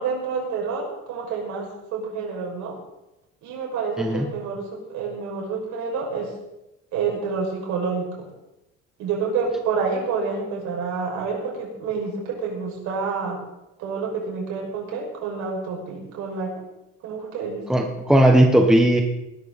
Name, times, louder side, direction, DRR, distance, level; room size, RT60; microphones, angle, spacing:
voice 1, 0.0-2.8 3.4-6.3 6.9-8.1 9.0-13.4 13.8-16.6 17.0-17.6, right 5 dB, 70° right, -1 dB, 6.4 m, -28 dB
voice 2, 17.7-19.0, right 1 dB, ahead, 2 dB, 1.2 m, -17 dB
19.5 x 13.0 x 4.3 m, 0.90 s
cardioid pair, 170°, 30 cm